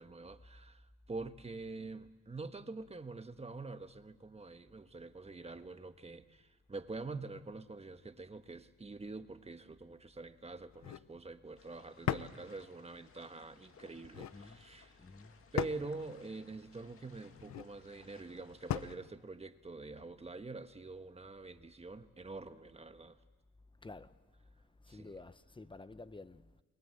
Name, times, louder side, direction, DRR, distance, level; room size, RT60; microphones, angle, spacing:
voice 1, 0.0-15.0 15.5-23.2 24.9-25.1, right 3 dB, 20° right, 1.3 m, -46 dB
sound 1, 10.7-11.1 12.1-12.4 13.9-14.4 15.6-15.9 17.3-17.7 18.7-19.0, left 11 dB, 65° left, 0.9 m, -37 dB
sound 2, 11.6-19.0, left 5 dB, 45° left, 2.2 m, -62 dB
voice 2, 14.2-14.7 15.0-15.4 23.8-24.2 24.6-26.6, left 3 dB, 15° left, 0.9 m, -51 dB
29.0 x 20.5 x 7.9 m
cardioid pair, 90°, 30 cm